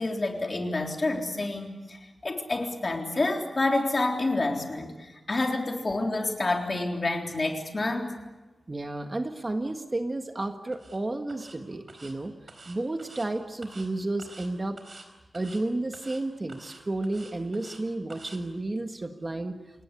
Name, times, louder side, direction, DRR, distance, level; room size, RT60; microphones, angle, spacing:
voice 1, 0.0-8.2, left 2 dB, 40° left, 2 dB, 3.7 m, -28 dB
voice 2, 8.7-12.3 12.7-14.8 15.3-19.6, right 2 dB, 30° right, 5 dB, 1.8 m, -32 dB
sound 1, 10.7-11.0 11.3-11.6 11.9-12.1 12.5-13.3 13.6-13.9 14.2-14.5 14.8-15.1 15.3-15.6 15.9-16.2 16.5-17.8 18.1-18.4, right 3 dB, 45° right, 4.5 m, -48 dB
28.5 x 18.5 x 8.5 m, 1.2 s
wide cardioid pair, 120°, 0 cm